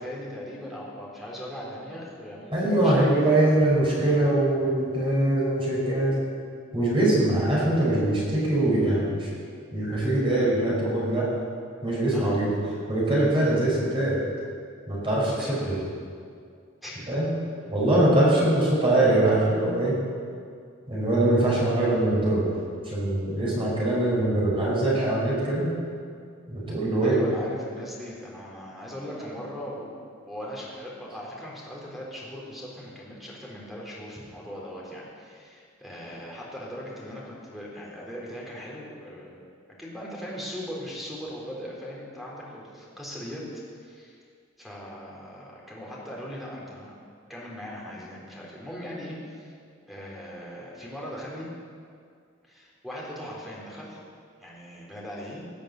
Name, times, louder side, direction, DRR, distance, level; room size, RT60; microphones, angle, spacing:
voice 1, 0.0-3.2 12.1-12.5 15.4-15.8 16.8-17.1 27.0-30.0 30.2-39.4 39.8-44.2 44.6-46.9 47.3-49.5 49.9-51.5 52.4-54.0 54.4-55.4, equal, ahead, -5 dB, 4.0 m, -39 dB
voice 2, 2.5-6.2 6.7-9.3 9.7-11.4 11.8-12.6 12.9-14.3 14.9-15.8 17.1-17.3 17.7-20.0 20.9-25.7 26.5-27.2, right 1 dB, 25° right, -6 dB, 5.4 m, -23 dB
18.5 x 8.9 x 8.3 m, 2.2 s
head